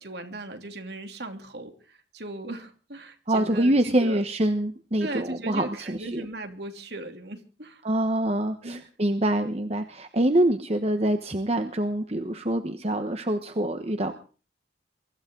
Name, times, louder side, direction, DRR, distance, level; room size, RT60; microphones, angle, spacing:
voice 1, 0.0-4.2 5.0-7.8 8.6-8.8, right 2 dB, 60° right, 5 dB, 3.0 m, -38 dB
voice 2, 3.3-6.3 7.8-14.1, right 1 dB, 35° right, 8 dB, 1.1 m, -25 dB
23.5 x 14.5 x 3.9 m, 0.37 s
head